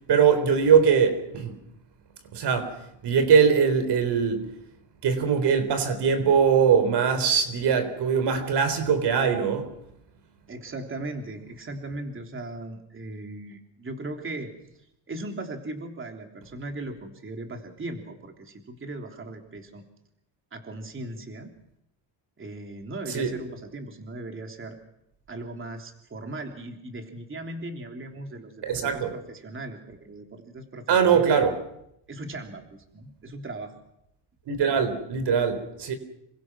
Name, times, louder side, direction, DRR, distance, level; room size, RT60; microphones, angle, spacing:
voice 1, 0.1-1.6 2.3-2.7 3.0-4.4 5.0-9.7 23.1-23.3 28.6-29.1 30.9-31.6 34.5-35.9, right 6 dB, 65° right, 4.0 m, -21 dB
voice 2, 10.5-14.5 15.1-19.8 20.5-21.5 22.4-24.8 25.3-31.2 32.1-33.7, right 2 dB, 30° right, 3.3 m, -38 dB
27.5 x 23.5 x 6.2 m
cardioid pair, 120°, 43 cm